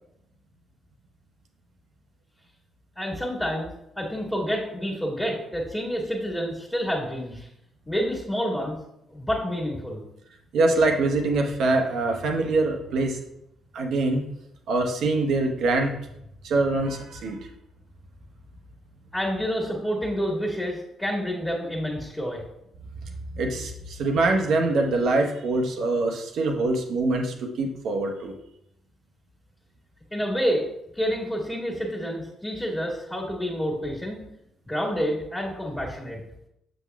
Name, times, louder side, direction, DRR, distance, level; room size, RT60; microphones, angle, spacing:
voice 1, 2.9-7.5 7.9-8.8 9.1-10.0 19.1-22.4 30.1-30.7 30.9-34.2 34.7-36.2, equal, 15° left, -3 dB, 1.6 m, -28 dB
voice 2, 10.5-13.2 13.7-14.2 14.7-15.9 16.4-17.4 23.3-28.3, right 2 dB, 60° right, 2 dB, 0.8 m, -24 dB
7.0 x 6.3 x 2.3 m, 0.80 s
figure-of-eight pair, 45°, 0 cm